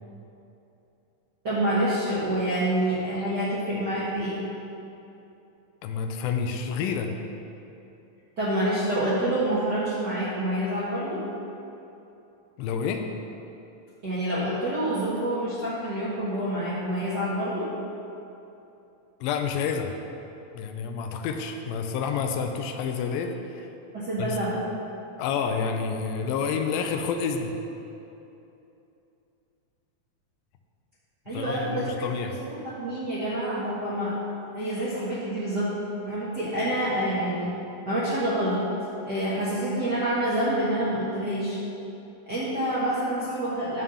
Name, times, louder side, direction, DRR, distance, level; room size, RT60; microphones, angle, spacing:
voice 1, 1.4-4.4 8.4-11.2 14.0-17.7 23.9-24.6 31.3-32.3 32.6-34.1 34.5-35.7 36.0-37.5 37.9-38.6 39.0-41.6 42.3-43.8, right 1 dB, 55° right, -11 dB, 1.1 m, -27 dB
voice 2, 5.8-7.1 12.6-13.0 19.2-19.9 20.5-23.7 24.2-24.4 25.2-27.5 31.3-32.3, left 6 dB, 90° left, 5 dB, 2.4 m, -29 dB
11.0 x 3.7 x 6.9 m, 2.9 s
omnidirectional pair, 4.2 m